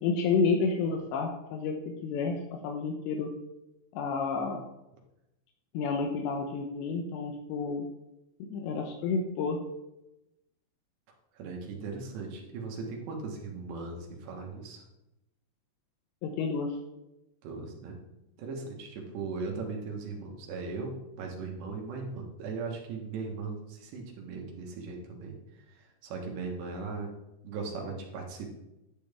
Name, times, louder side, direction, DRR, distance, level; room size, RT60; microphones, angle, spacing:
voice 1, 0.0-1.8 2.0-2.4 2.6-3.3 3.9-4.6 5.7-7.8 8.4-9.6 16.2-16.8, left 4 dB, 85° left, 2 dB, 3.2 m, -30 dB
voice 2, 11.3-14.8 17.4-18.0 18.4-25.4 25.7-27.1 27.4-28.6, right 4 dB, 80° right, 0 dB, 3.6 m, -38 dB
11.0 x 8.8 x 3.5 m, 0.91 s
omnidirectional pair, 4.9 m